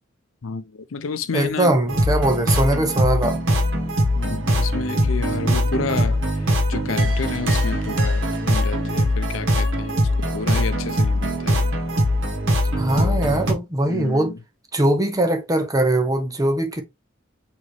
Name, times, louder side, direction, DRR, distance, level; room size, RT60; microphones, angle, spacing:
voice 1, 0.4-1.7 4.1-11.6 13.0-13.6 13.9-14.4, left 5 dB, 80° left, 0.5 m, -30 dB
voice 2, 1.3-3.4 12.8-14.3 14.7-16.8, right 1 dB, 20° right, 1.0 m, -21 dB
sound 1, 1.9-13.5, equal, 70° right, 1.5 m, -21 dB
5.0 x 3.0 x 3.1 m
head